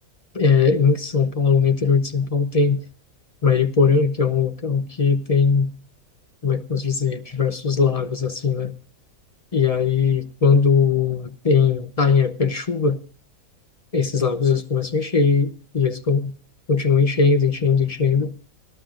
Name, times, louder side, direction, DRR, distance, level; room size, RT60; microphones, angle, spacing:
voice 1, 0.3-2.8 3.4-5.7 6.4-8.8 9.5-13.0 13.9-16.3 16.7-18.3, left 5 dB, 40° left, 0.6 m, -20 dB
27.5 x 12.0 x 2.4 m
omnidirectional pair, 1.5 m